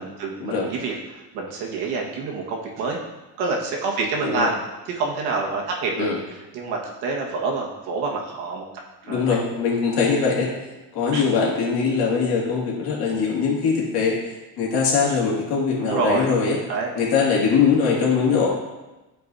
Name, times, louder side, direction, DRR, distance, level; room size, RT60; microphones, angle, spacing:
voice 1, 0.0-3.0 3.4-4.6 4.8-8.7 9.0-9.2 11.1-11.3 15.8-16.3 16.7-16.9, right 3 dB, 65° right, -1 dB, 1.6 m, -27 dB
voice 2, 9.1-10.5 10.9-14.2 14.6-16.6 17.0-18.5, left 5 dB, 60° left, -3 dB, 2.2 m, -21 dB
12.0 x 4.8 x 2.7 m, 1.1 s
cardioid pair, 160°, 41 cm